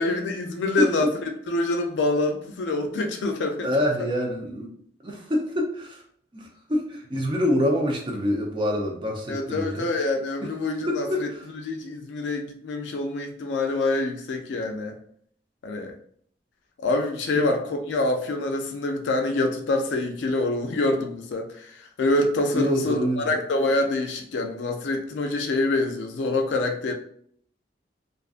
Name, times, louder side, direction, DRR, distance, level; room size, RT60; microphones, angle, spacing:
voice 1, 0.0-3.7 9.3-11.3 11.5-14.9 15.6-15.9 16.8-26.9, left 2 dB, 85° left, 0.4 m, -26 dB
voice 2, 0.8-1.1 3.6-4.7 5.0-6.0 6.3-9.8 10.9-11.2 17.3-17.5 22.5-23.3, left 1 dB, 25° right, 0.5 m, -26 dB
2.5 x 2.4 x 2.4 m
head